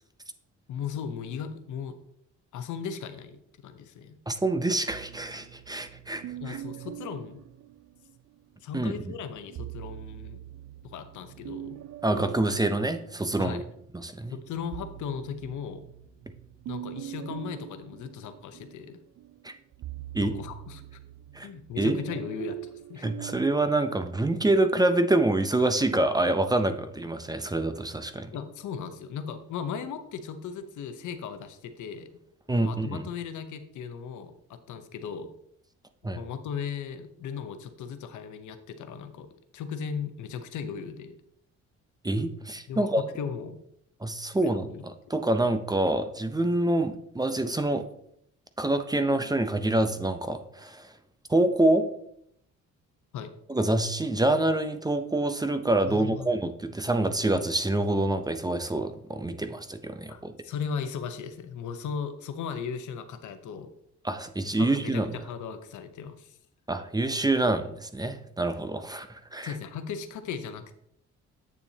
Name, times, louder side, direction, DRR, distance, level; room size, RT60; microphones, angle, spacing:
voice 1, 0.7-2.0 2.5-4.2 6.4-7.4 8.6-10.4 10.8-11.8 13.4-13.7 14.3-15.8 16.7-19.0 20.2-20.8 21.4-23.0 28.3-32.2 32.6-35.3 36.0-41.2 42.7-43.6 44.2-44.9 53.1-53.3 55.9-56.3 60.1-63.7 64.6-66.4 69.4-70.8, left 7 dB, 75° left, 9 dB, 0.9 m, -37 dB
voice 2, 4.3-6.6 8.7-8.9 12.0-13.6 13.9-14.3 19.4-19.5 20.1-20.3 21.3-21.5 21.8-22.0 23.0-28.3 32.5-33.0 36.0-36.2 42.0-43.0 44.0-44.7 45.1-47.8 48.6-50.9 51.3-51.9 53.5-60.3 64.0-65.1 66.7-69.5, right 2 dB, 15° right, 9 dB, 0.6 m, -26 dB
sound 1, 4.9-8.4 9.4-13.8 14.2-23.5, right 14 dB, 55° right, 0.5 m, -43 dB
8.6 x 6.8 x 2.8 m, 0.71 s
cardioid pair, 90°, 30 cm